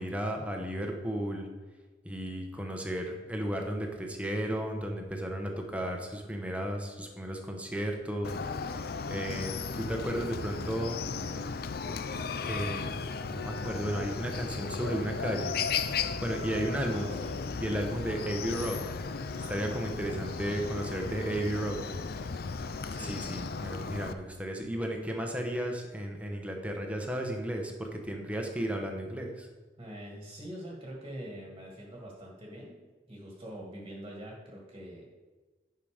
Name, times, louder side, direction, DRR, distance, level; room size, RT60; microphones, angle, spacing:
voice 1, 0.0-1.5 2.0-11.0 12.4-12.9 13.3-15.6 15.8-17.1 17.6-18.8 19.1-19.2 19.5-21.8 23.0-29.5, right 1 dB, 10° right, 2 dB, 1.1 m, -34 dB
Chicken rooster, 8.2-24.1, left 5 dB, 60° left, 0.5 m, -35 dB
voice 2, 16.9-17.3 22.9-23.2 29.8-32.8 33.1-35.1, equal, 25° right, -2 dB, 1.8 m, -44 dB
10.5 x 5.8 x 5.1 m, 1.3 s
head